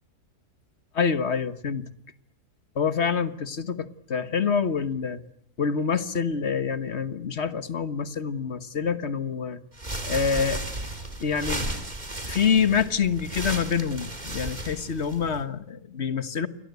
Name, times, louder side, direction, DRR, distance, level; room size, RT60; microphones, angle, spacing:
voice 1, 0.9-1.9 2.7-5.2 5.6-9.6 10.0-10.6 11.2-11.6 12.3-16.5, left 6 dB, 45° left, 12 dB, 1.5 m, -26 dB
sound 1, 9.7-15.4, right 1 dB, 25° right, 3.6 m, -34 dB
29.0 x 23.0 x 8.2 m, 0.68 s
omnidirectional pair, 1.7 m